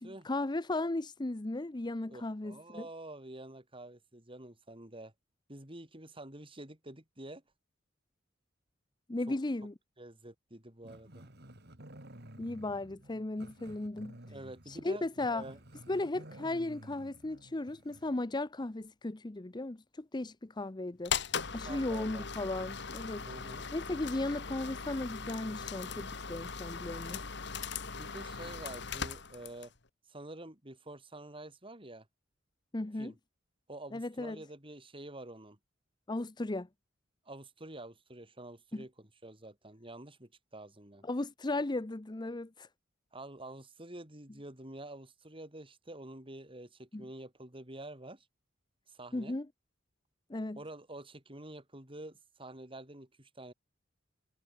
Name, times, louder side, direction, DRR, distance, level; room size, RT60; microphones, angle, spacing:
voice 1, 0.0-2.9 9.1-9.7 12.4-14.2 14.7-15.4 15.9-21.1 21.5-23.3 23.7-27.2 32.7-33.1 33.9-34.4 36.1-36.7 38.7-38.8 41.0-42.7 46.9-47.0 49.1-49.5 50.3-50.6, left 2 dB, 25° left, 0.7 m, -36 dB
voice 2, 2.1-5.1 5.5-7.4 9.3-9.4 10.0-11.3 14.3-15.6 21.7-22.3 23.2-23.7 28.0-29.7 30.1-32.1 33.0-33.2 33.7-35.6 37.3-41.0 43.1-48.3 48.9-49.4 50.6-53.5, right 1 dB, 30° right, 5.9 m, -48 dB
Growling, 10.8-18.2, right 1 dB, 60° right, 5.3 m, -53 dB
sound 1, 21.0-29.8, left 6 dB, 65° left, 2.3 m, -39 dB
head